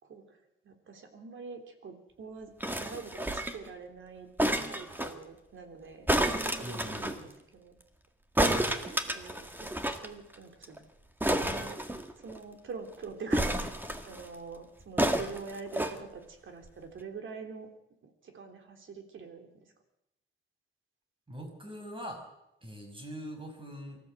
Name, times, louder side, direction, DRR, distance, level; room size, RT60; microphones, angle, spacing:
voice 1, 0.0-4.3 4.6-6.1 6.5-7.8 8.6-10.8 11.3-11.8 12.2-13.8 14.1-17.7 18.0-19.7, right 4 dB, 75° right, 5 dB, 3.5 m, -45 dB
sound 1, 2.6-3.7 4.4-5.1 6.1-7.2 8.4-10.1 10.3-10.4 10.6-10.8 11.2-12.4 13.3-14.3 15.0-15.9 16.7-16.8, right 1 dB, 10° right, 1.7 m, -30 dB
voice 2, 6.6-7.3 21.3-22.2 22.6-24.0, equal, 25° right, 3 dB, 5.7 m, -42 dB
24.5 x 14.0 x 8.0 m, 0.86 s
wide cardioid pair, 140°, 21 cm